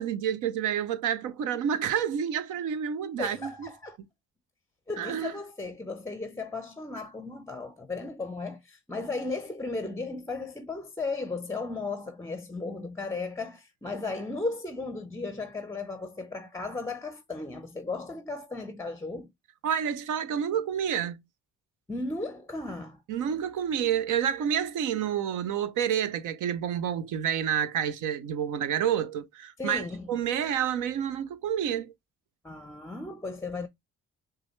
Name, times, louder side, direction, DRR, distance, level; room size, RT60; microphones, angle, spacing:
voice 1, 0.0-3.7 5.0-5.3 19.6-21.2 23.1-31.9, right 9 dB, 80° right, 0.7 m, -29 dB
voice 2, 3.2-4.0 4.9-19.3 21.9-23.0 29.6-30.1 32.4-33.7, left 3 dB, 10° left, 0.5 m, -35 dB
6.0 x 2.3 x 3.1 m
cardioid pair, 90°, 30 cm